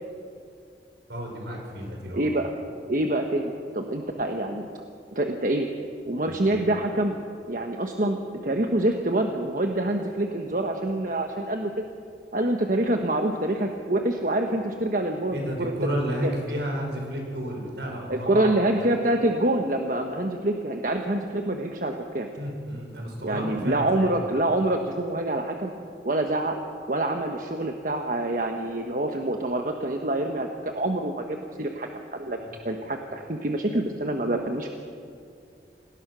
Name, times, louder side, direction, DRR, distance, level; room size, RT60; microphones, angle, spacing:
voice 1, 1.1-2.2 6.3-6.4 15.3-18.5 22.4-24.1, equal, 70° right, 0 dB, 5.8 m, -31 dB
voice 2, 2.1-2.5 2.9-4.7 5.1-5.7 6.1-7.2 7.5-11.8 12.3-15.7 16.2-16.3 18.1-22.3 23.2-25.7 26.0-26.6 26.9-32.4 32.6-34.7, right 1 dB, 45° right, 4 dB, 1.2 m, -26 dB
28.0 x 19.0 x 6.3 m, 2.4 s
head